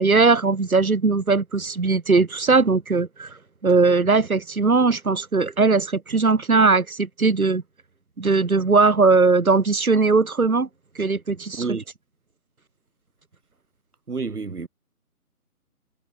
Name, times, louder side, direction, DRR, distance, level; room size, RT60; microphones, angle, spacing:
voice 1, 0.0-3.3 3.6-7.6 8.2-10.7 11.0-11.7, right 4 dB, 65° right, 4.1 m, -19 dB
voice 2, 14.1-14.7, right 4 dB, 80° right, 2.9 m, -29 dB
hypercardioid pair, 180°, 46 cm